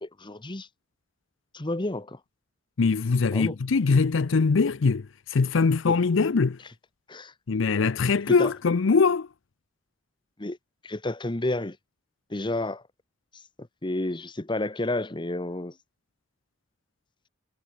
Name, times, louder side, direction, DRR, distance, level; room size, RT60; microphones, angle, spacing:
voice 1, 0.0-0.7 1.5-2.2 3.3-3.5 5.8-6.0 7.1-7.3 8.3-8.5 10.4-10.6 10.8-11.8 12.3-12.8 13.6-15.7, left 2 dB, 25° left, 1.1 m, -30 dB
voice 2, 2.8-6.6 7.5-9.3, left 4 dB, 75° left, 0.6 m, -22 dB
head